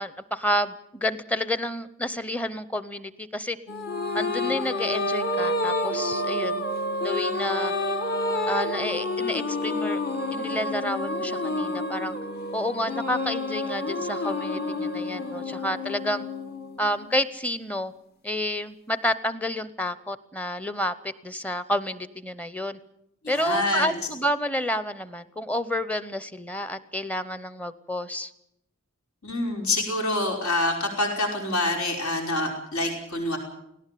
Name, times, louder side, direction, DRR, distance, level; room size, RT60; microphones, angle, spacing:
voice 1, 0.0-3.6 4.1-6.6 7.0-7.7 8.5-10.0 10.3-12.2 12.5-16.2 16.8-17.9 18.2-22.8 23.3-28.3, left 1 dB, 5° left, 15 dB, 0.8 m, -30 dB
sound 1, 3.7-17.3, left 2 dB, 45° left, 1.8 m, -29 dB
voice 2, 23.2-23.9 29.2-33.4, left 2 dB, 80° left, 2 dB, 5.0 m, -26 dB
18.5 x 17.5 x 9.2 m, 0.78 s
head